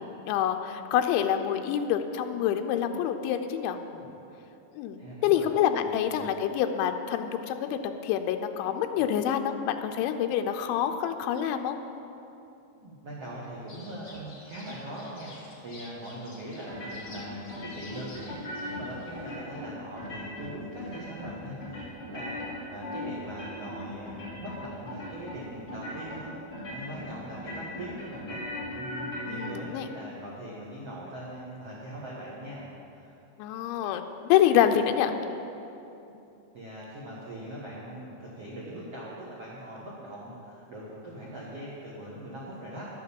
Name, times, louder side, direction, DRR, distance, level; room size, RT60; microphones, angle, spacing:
voice 1, 0.0-3.8 4.8-11.8 29.3-29.9 33.4-35.1, left 10 dB, 85° left, 6 dB, 3.1 m, -27 dB
voice 2, 5.0-5.5 5.8-6.2 9.0-9.1 12.7-26.3 26.7-28.4 28.7-32.7 32.9-33.1 36.5-42.9, right 1 dB, 85° right, -6 dB, 1.3 m, -41 dB
sound 1, 13.7-19.4, left 2 dB, 70° left, 1.0 m, -50 dB
sound 2, 16.7-17.2 17.5-18.8 19.1-19.7 20.0-20.5 20.8-21.3 21.6-23.8 24.1-24.6 24.9-25.4 25.7-26.2 26.5-27.1 27.3-29.5, left 1 dB, 35° left, 4.1 m, -38 dB
11.0 x 8.9 x 7.1 m, 2.8 s
omnidirectional pair, 5.3 m